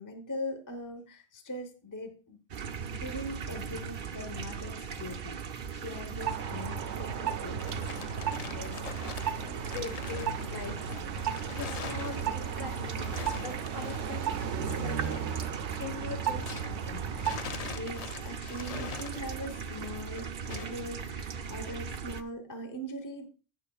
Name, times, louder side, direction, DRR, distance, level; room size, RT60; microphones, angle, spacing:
voice 1, 0.0-2.4 2.9-7.6 17.7-23.3, equal, 20° left, 6 dB, 0.9 m, -41 dB
sound 1, 2.5-22.2, right 6 dB, 55° right, 0.7 m, -39 dB
sound 2, 6.2-17.6, right 7 dB, 80° right, 0.9 m, -35 dB
sound 3, 7.3-16.8 17.1-20.9, left 8 dB, 70° left, 0.3 m, -45 dB
voice 2, 8.4-8.8 9.0-17.2, left 4 dB, 50° left, 4 dB, 1.6 m, -43 dB
16.0 x 6.1 x 2.3 m, 0.35 s
omnidirectional pair, 1.2 m